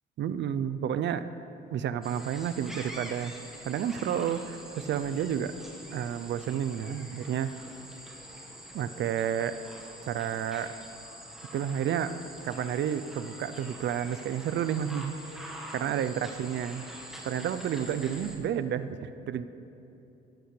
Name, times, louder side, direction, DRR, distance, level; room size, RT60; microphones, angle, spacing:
voice 1, 0.2-1.3 1.7-3.3 3.6-5.5 5.9-7.5 8.7-9.6 10.0-10.7 11.5-16.8 17.2-19.4, right 9 dB, 65° right, 12 dB, 0.5 m, -31 dB
sound 1, 2.0-18.4, right 1 dB, ahead, 1.4 m, -45 dB
16.5 x 8.1 x 3.2 m, 3.0 s
cardioid pair, 90°, 20 cm